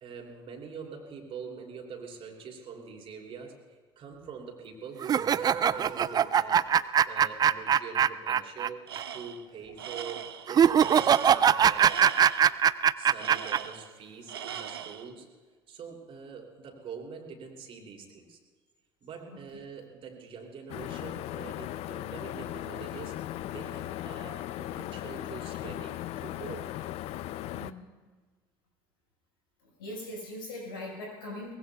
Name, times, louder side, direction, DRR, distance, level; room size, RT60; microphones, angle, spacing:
voice 1, 0.0-6.7 7.0-12.0 13.0-15.3 15.7-18.4 19.0-23.2 23.5-26.7, right 5 dB, 50° right, 0 dB, 3.0 m, -44 dB
sound 1, 5.0-8.7 9.0-9.1 10.5-13.6, right 8 dB, 35° right, 0.4 m, -22 dB
Tools, 8.9-9.4 9.8-12.5 13.2-14.0 14.3-15.1, right 9 dB, 85° right, 0.5 m, -40 dB
sound 2, 20.7-27.7, left 13 dB, 55° left, 0.5 m, -37 dB
voice 2, 27.4-27.9 29.6-31.5, left 1 dB, 80° left, -1 dB, 4.8 m, -41 dB
23.0 x 20.0 x 2.3 m, 1.4 s
hypercardioid pair, 60°, 12 cm